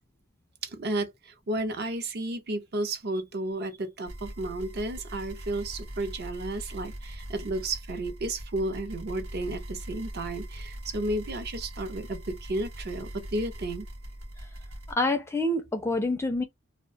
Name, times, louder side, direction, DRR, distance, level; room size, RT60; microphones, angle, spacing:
voice 1, 0.6-13.9, right 2 dB, 50° right, 0.6 m, -32 dB
sound 1, 4.1-14.9, right 1 dB, 85° right, 0.9 m, -41 dB
voice 2, 14.9-16.4, left 2 dB, 10° left, 0.3 m, -27 dB
2.4 x 2.1 x 2.6 m
head